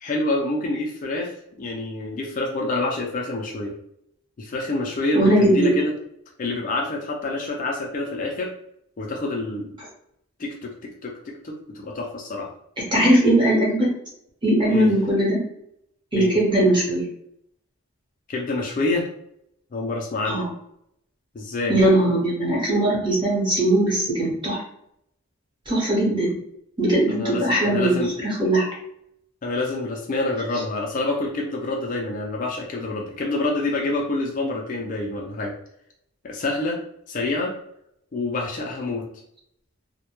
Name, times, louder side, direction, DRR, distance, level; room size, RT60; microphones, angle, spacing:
voice 1, 0.0-3.7 4.4-5.9 6.4-8.5 9.0-9.7 10.4-12.5 14.7-14.9 16.2-16.4 18.3-19.1 19.7-20.4 21.3-21.8 27.1-28.1 29.4-35.5 36.2-36.8 37.1-37.5 38.1-39.0, left 2 dB, 35° left, -1 dB, 0.3 m, -27 dB
voice 2, 5.1-5.7 12.9-13.9 14.4-15.4 16.1-17.0 20.2-20.5 21.7-24.6 25.7-26.3 26.8-28.7, right 1 dB, 20° right, -5 dB, 0.9 m, -20 dB
2.1 x 2.1 x 2.8 m, 0.76 s
head